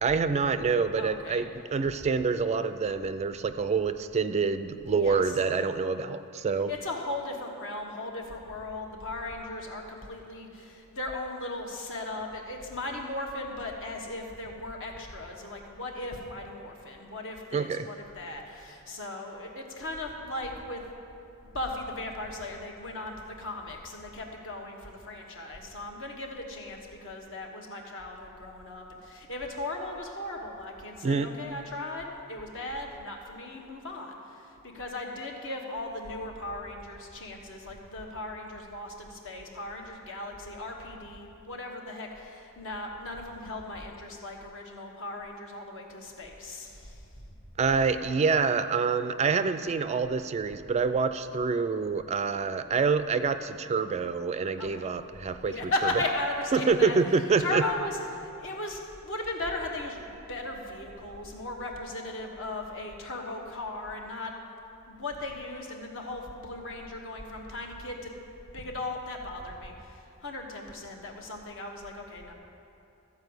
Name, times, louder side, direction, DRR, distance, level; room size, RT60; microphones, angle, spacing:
voice 1, 0.0-6.7 17.5-17.9 31.0-31.3 47.6-55.7 56.5-57.6, right 5 dB, 30° right, 11 dB, 0.3 m, -27 dB
voice 2, 1.0-1.4 4.9-5.2 6.7-20.8 21.5-47.0 54.6-54.9 55.4-57.0 57.4-64.3 64.9-68.1 68.5-72.3, left 2 dB, 60° left, 1 dB, 1.3 m, -37 dB
13.5 x 4.9 x 7.9 m, 2.8 s
head